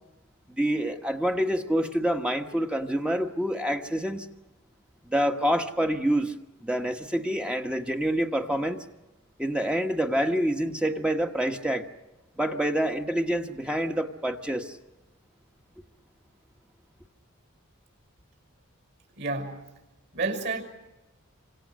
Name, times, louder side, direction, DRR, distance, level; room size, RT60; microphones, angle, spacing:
voice 1, 0.5-4.3 5.1-6.3 6.6-8.8 9.4-11.9 12.3-14.8, equal, 5° right, 1.3 m, -27 dB
voice 2, 19.1-19.7 20.1-20.6, right 3 dB, 55° right, 6.0 m, -30 dB
27.5 x 26.5 x 6.4 m
head